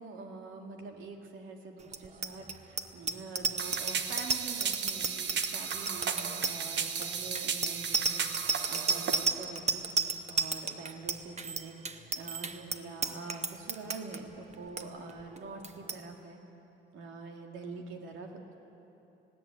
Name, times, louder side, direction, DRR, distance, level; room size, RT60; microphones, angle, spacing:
voice 1, 0.0-16.4 16.9-18.6, right 3 dB, 85° right, 3 dB, 2.4 m, -45 dB
Bicycle bell, 1.9-14.2 14.5-14.8 15.1-15.4 15.6-16.0, right 4 dB, 35° right, 1.1 m, -32 dB
sound 1, 3.6-9.3, right 6 dB, 60° right, 1.3 m, -34 dB
19.5 x 17.0 x 8.3 m, 3.0 s
cardioid pair, 90°, 20 cm